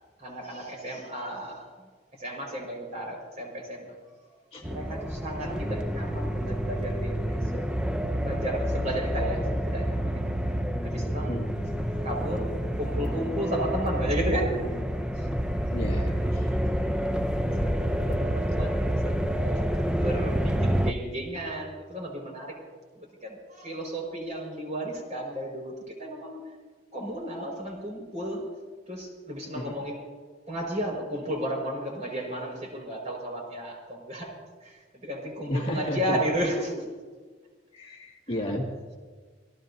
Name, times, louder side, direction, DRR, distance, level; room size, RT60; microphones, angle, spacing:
voice 1, 0.2-1.6 2.2-3.9 4.5-7.7 8.2-10.2 10.8-11.4 11.9-12.5 12.8-14.6 15.2-15.3 16.0-16.1 16.4-16.7 17.4-22.6 23.2-26.4 26.9-28.4 28.9-30.0 30.5-34.3 34.6-36.8, right 1 dB, 40° right, 0 dB, 5.3 m, -33 dB
sound 1, 4.6-20.9, equal, 5° right, 0.6 m, -28 dB
voice 2, 15.7-16.5 29.5-29.8 35.5-36.2 37.7-38.7, left 1 dB, 30° left, -2 dB, 2.3 m, -32 dB
28.5 x 17.5 x 2.8 m, 1.4 s
head